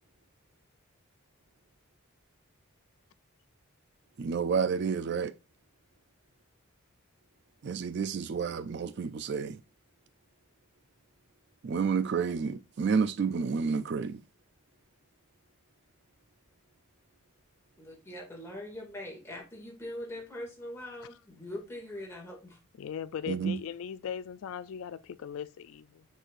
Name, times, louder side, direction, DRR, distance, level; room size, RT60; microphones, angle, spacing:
voice 1, 4.2-5.3 7.6-9.6 11.6-14.2 23.3-23.6, right 6 dB, 50° right, 0.3 m, -30 dB
voice 2, 17.8-22.6, left 1 dB, 10° left, 2.1 m, -42 dB
voice 3, 22.8-26.0, left 8 dB, 75° left, 0.3 m, -39 dB
6.3 x 6.2 x 2.5 m
head